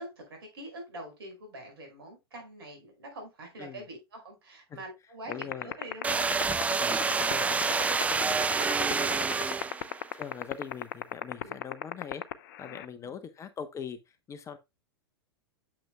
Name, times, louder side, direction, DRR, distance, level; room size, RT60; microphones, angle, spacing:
voice 1, 0.0-9.5 11.4-11.6 12.6-13.1, right 1 dB, 65° right, 5.2 m, -46 dB
sound 1, 5.3-12.9, left 14 dB, 50° left, 0.7 m, -31 dB
voice 2, 5.3-5.7 6.8-7.6 10.1-12.2 12.6-14.6, left 7 dB, 20° left, 0.9 m, -42 dB
sound 2, 6.0-10.1, right 4 dB, 10° right, 0.5 m, -28 dB
8.9 x 7.3 x 2.2 m
figure-of-eight pair, 95°, 13 cm